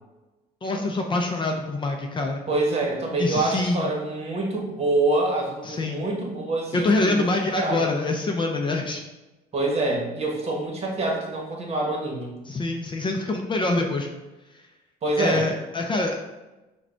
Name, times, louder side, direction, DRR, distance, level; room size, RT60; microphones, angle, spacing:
voice 1, 0.6-2.5 3.2-3.9 5.6-6.0 6.7-9.0 12.5-14.1 15.2-16.1, left 2 dB, 30° left, 2 dB, 0.5 m, -25 dB
voice 2, 2.5-7.3 7.6-7.9 9.5-12.3 15.0-15.5, right 2 dB, 40° right, -1 dB, 1.2 m, -26 dB
4.9 x 2.3 x 4.3 m, 1.1 s
cardioid pair, 110°, 17 cm